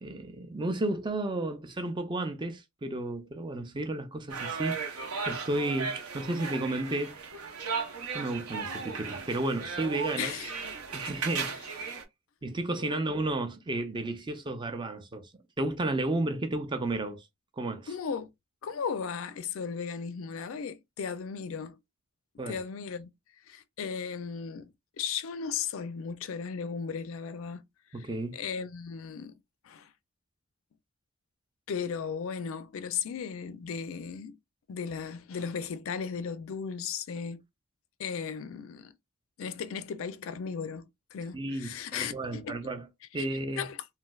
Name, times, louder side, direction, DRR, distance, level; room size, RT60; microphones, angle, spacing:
voice 1, 0.0-7.2 8.1-10.3 10.9-11.7 12.4-15.3 15.6-17.3 17.5-17.9 22.4-22.6 27.9-28.4 41.3-42.9 43.1-43.6, right 2 dB, 20° right, 0.4 m, -32 dB
sound 1, 4.3-12.0, right 5 dB, 80° right, 0.9 m, -36 dB
voice 2, 10.2-10.7 12.8-13.0 17.9-18.3 18.6-21.8 22.5-23.1 23.5-24.7 25.0-27.6 27.9-29.4 29.6-29.9 31.7-34.4 34.7-37.4 38.0-38.9 39.4-40.9 41.1-42.5 43.1-43.3 43.6-43.9, left 6 dB, 65° left, 0.4 m, -36 dB
3.1 x 2.6 x 2.3 m
head